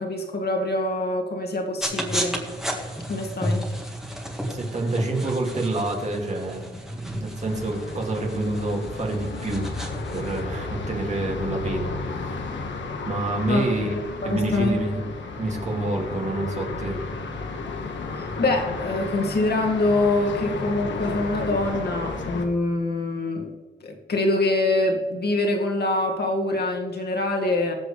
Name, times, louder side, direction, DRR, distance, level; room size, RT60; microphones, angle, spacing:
voice 1, 0.0-2.4 3.1-3.6 13.5-14.8 18.1-23.5 23.8-27.7, left 2 dB, 60° left, 2 dB, 2.1 m, -25 dB
sound 1, 1.8-10.4, equal, ahead, 1.9 m, -32 dB
voice 2, 4.5-9.7 10.1-12.3 13.0-15.0 15.4-17.0, right 2 dB, 40° right, 0 dB, 2.5 m, -28 dB
sound 2, 7.5-22.5, left 3 dB, 80° left, 1.6 m, -33 dB
20.5 x 7.8 x 3.4 m, 1.3 s
wide cardioid pair, 155°, 19 cm